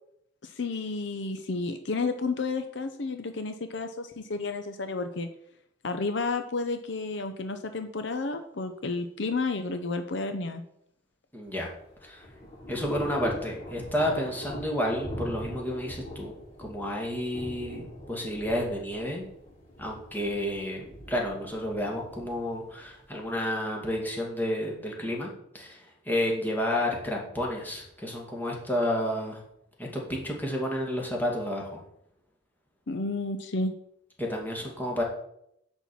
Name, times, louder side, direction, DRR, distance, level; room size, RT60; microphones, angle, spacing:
voice 1, 0.4-5.3 5.8-10.6 32.9-33.7, left 3 dB, 65° left, 7 dB, 0.7 m, -31 dB
voice 2, 11.3-11.7 12.0-12.3 12.7-19.3 19.8-29.4 29.8-31.8 34.2-35.0, left 1 dB, 10° left, -1 dB, 2.2 m, -31 dB
Thunder / Rain, 11.5-23.4, left 1 dB, 30° left, 3.9 m, -42 dB
10.0 x 4.5 x 7.1 m, 0.74 s
head